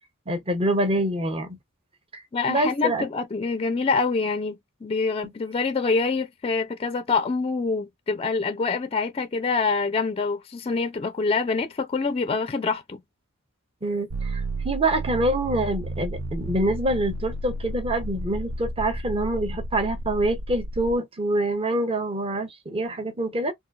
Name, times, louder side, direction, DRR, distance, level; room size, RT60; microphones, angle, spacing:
voice 1, 0.3-1.6 2.1-2.2 2.5-3.1 13.8-23.5, right 1 dB, 25° right, 0.7 m, -26 dB
voice 2, 2.3-13.0, left 4 dB, 30° left, 0.4 m, -26 dB
sound 1, 14.1-21.0, right 2 dB, 80° right, 0.5 m, -32 dB
3.7 x 2.3 x 2.3 m
head